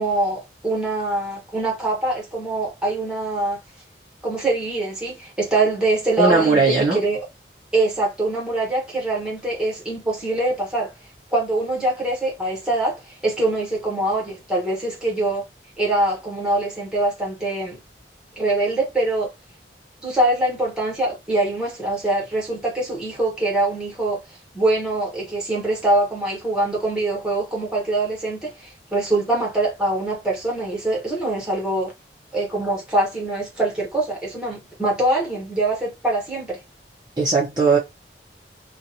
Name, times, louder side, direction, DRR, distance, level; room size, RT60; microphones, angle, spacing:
voice 1, 0.0-3.6 4.2-7.2 7.7-10.9 11.3-15.5 15.8-17.8 18.4-19.3 20.0-24.2 24.5-31.9 32.3-36.6, right 2 dB, 5° right, 1.1 m, -23 dB
voice 2, 6.2-7.0 37.2-37.8, right 4 dB, 25° right, 0.6 m, -18 dB
2.6 x 2.2 x 2.7 m
head